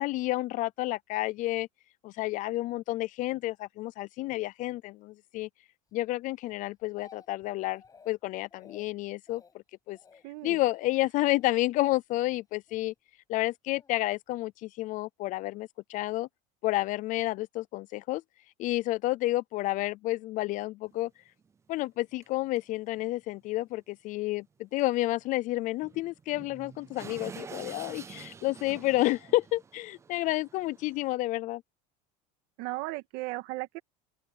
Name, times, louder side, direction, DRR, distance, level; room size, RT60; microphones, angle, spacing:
voice 1, 0.0-1.7 2.0-5.5 5.9-9.4 9.9-10.0 10.4-12.9 13.3-16.3 16.6-18.2 18.6-21.1 21.7-31.6, left 18 dB, 45° left, 0.4 m, -30 dB
Speech, 6.5-7.5 7.7-8.2 8.5-8.9 9.3-9.5 9.9-10.3 10.6-10.9 11.3-11.7 12.1-12.9 13.7-13.9, left 5 dB, 20° left, 6.4 m, -56 dB
voice 2, 10.2-10.6 32.6-33.8, right 20 dB, 60° right, 1.9 m, -36 dB
sound 1, 20.9-21.0 21.4-21.5 22.2-22.3 22.6-22.7 22.9-23.1 24.8-24.9 25.2-25.3 25.8-31.2, right 6 dB, 15° right, 0.5 m, -48 dB
open air
cardioid pair, 150°, 19 cm